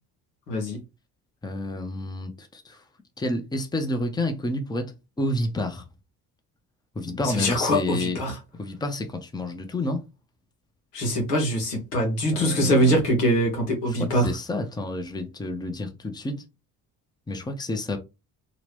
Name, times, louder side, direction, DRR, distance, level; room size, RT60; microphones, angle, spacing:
voice 1, 0.5-0.8 7.2-8.4 10.9-14.3, equal, 85° left, 1.1 m, -23 dB
voice 2, 1.4-2.8 3.2-5.8 7.0-8.2 8.6-10.0 12.3-13.0 13.9-16.4 17.3-18.0, left 1 dB, 10° left, 0.7 m, -29 dB
2.9 x 2.5 x 3.2 m
hypercardioid pair, 50°, 47 cm